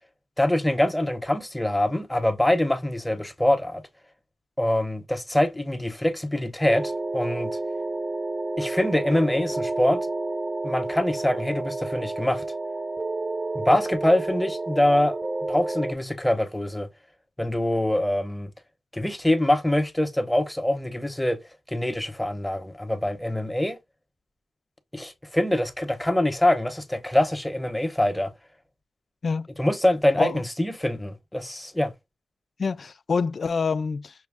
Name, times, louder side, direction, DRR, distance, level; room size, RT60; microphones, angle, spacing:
voice 1, 0.4-3.8 4.6-7.5 8.6-10.0 10.6-12.4 13.5-15.2 15.5-16.9 17.4-18.5 18.9-21.4 21.7-23.8 24.9-28.3 29.6-31.9, left 1 dB, 10° left, 0.9 m, -24 dB
sound 1, 6.7-15.9, right 2 dB, 30° right, 0.3 m, -30 dB
voice 2, 32.6-34.1, left 5 dB, 55° left, 0.3 m, -26 dB
6.1 x 2.1 x 3.4 m
cardioid pair, 80°, 0 cm